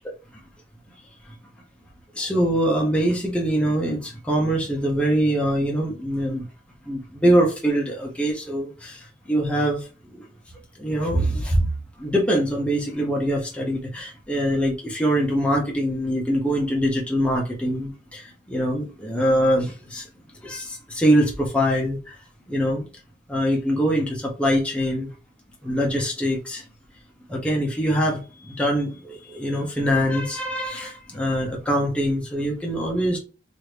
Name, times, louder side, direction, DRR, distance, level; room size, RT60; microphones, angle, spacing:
voice 1, 2.1-6.5 6.8-10.3 10.8-11.7 12.0-20.1 20.4-22.2 22.5-22.9 23.3-25.1 25.6-26.6 27.3-33.2, equal, 5° left, 0.6 m, -23 dB
3.0 x 2.5 x 3.2 m
head